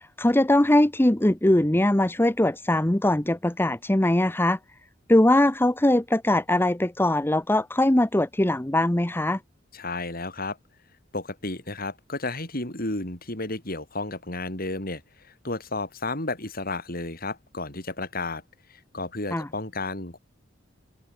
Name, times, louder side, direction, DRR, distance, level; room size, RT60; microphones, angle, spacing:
voice 1, 0.2-4.6 5.1-9.4 19.3-19.5, left 1 dB, 10° left, 0.8 m, -21 dB
voice 2, 9.7-10.6 11.1-18.4 18.7-20.2, left 2 dB, 50° left, 6.9 m, -32 dB
open air
head